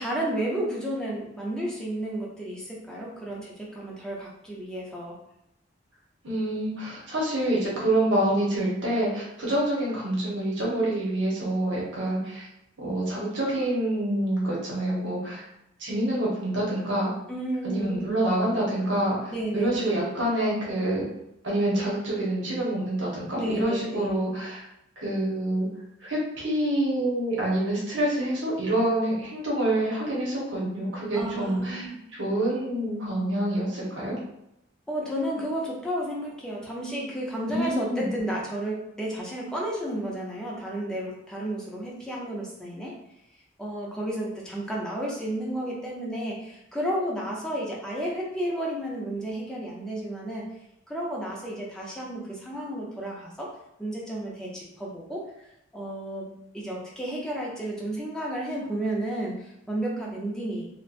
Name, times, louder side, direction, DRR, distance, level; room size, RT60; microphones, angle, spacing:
voice 1, 0.0-5.2 17.3-18.1 19.3-20.0 23.4-24.1 31.1-32.0 34.9-43.0 43.6-50.5 50.9-53.5 53.8-55.2 55.7-60.6, right 1 dB, 5° left, -4 dB, 0.5 m, -32 dB
voice 2, 6.2-12.5 12.8-15.5 15.8-17.1 17.6-21.1 21.4-24.6 25.0-25.7 26.0-31.9 32.2-34.2 37.5-38.1, right 1 dB, 70° right, -5 dB, 1.0 m, -27 dB
2.8 x 2.1 x 2.4 m, 0.81 s
head